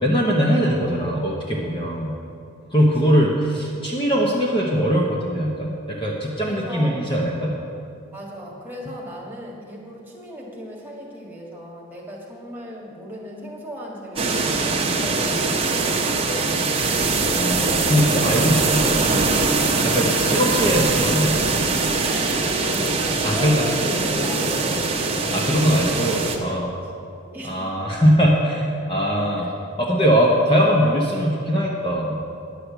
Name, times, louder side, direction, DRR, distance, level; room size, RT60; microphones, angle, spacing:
voice 1, 0.0-2.1 2.7-7.5 17.3-19.0 19.8-21.4 23.2-23.7 25.3-26.7 27.4-29.5 29.8-32.2, equal, 20° left, -3 dB, 0.9 m, -21 dB
voice 2, 6.4-7.0 8.1-16.8 20.2-20.4 21.8-25.4 25.7-25.8 27.2-27.8 29.4-29.5, equal, 10° right, -3 dB, 1.6 m, -36 dB
sound 1, 14.2-26.4, right 3 dB, 25° right, 0.9 m, -22 dB
10.0 x 6.5 x 8.0 m, 2.6 s
head